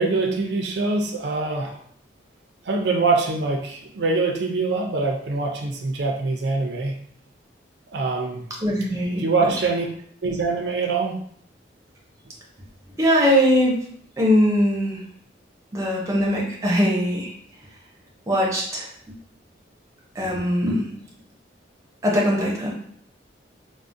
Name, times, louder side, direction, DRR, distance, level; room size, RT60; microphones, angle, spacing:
voice 1, 0.0-1.8 2.6-7.0 7.9-8.4 9.2-9.9 10.2-11.2, right 3 dB, 70° right, 2 dB, 0.4 m, -24 dB
voice 2, 8.6-9.5 13.0-13.8 14.2-15.0 15.7-17.3 18.3-18.9 20.2-20.9 22.0-22.7, equal, 20° right, -3 dB, 0.5 m, -21 dB
3.6 x 2.0 x 2.5 m, 0.63 s
head